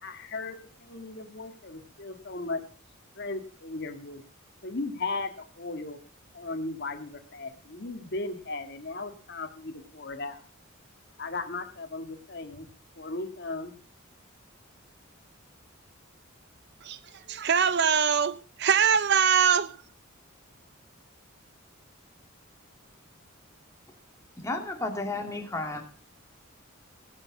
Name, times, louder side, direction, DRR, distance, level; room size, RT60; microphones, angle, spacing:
voice 1, 0.0-2.6 3.2-4.2 4.6-6.0 6.3-10.4 11.2-12.7 13.0-13.7, left 3 dB, 55° left, 1.7 m, -36 dB
voice 2, 17.3-19.8, right 7 dB, 55° right, 0.6 m, -23 dB
voice 3, 24.4-25.8, left 2 dB, 15° left, 2.3 m, -32 dB
17.5 x 6.6 x 7.2 m
head